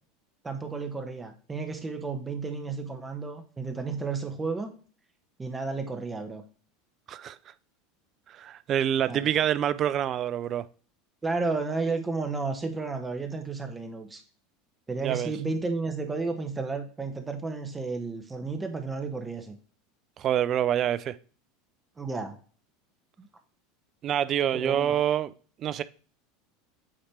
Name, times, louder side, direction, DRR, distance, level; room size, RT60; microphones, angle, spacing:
voice 1, 0.4-4.7 5.4-6.4 9.1-9.3 11.2-14.2 14.9-19.6 22.0-22.4 23.2-23.3 24.5-24.9, right 4 dB, 20° right, 1.2 m, -32 dB
voice 2, 8.3-10.6 15.0-15.3 20.2-21.1 24.0-25.3 25.6-25.8, right 10 dB, 40° right, 0.4 m, -26 dB
8.7 x 3.2 x 4.4 m
hypercardioid pair, 85°, 0 cm